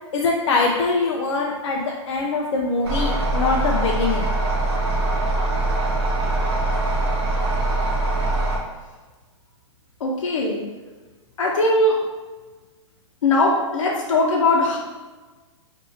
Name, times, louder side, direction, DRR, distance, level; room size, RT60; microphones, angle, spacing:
voice 1, 0.1-4.3, left 3 dB, 65° left, -1 dB, 0.5 m, -23 dB
sound 1, 2.8-8.6, right 2 dB, 55° right, 0.8 m, -22 dB
voice 2, 10.0-10.6 11.4-11.9 13.2-14.8, left 2 dB, 90° left, -2 dB, 1.1 m, -20 dB
2.8 x 2.6 x 4.0 m, 1.3 s
hypercardioid pair, 175°, 16 cm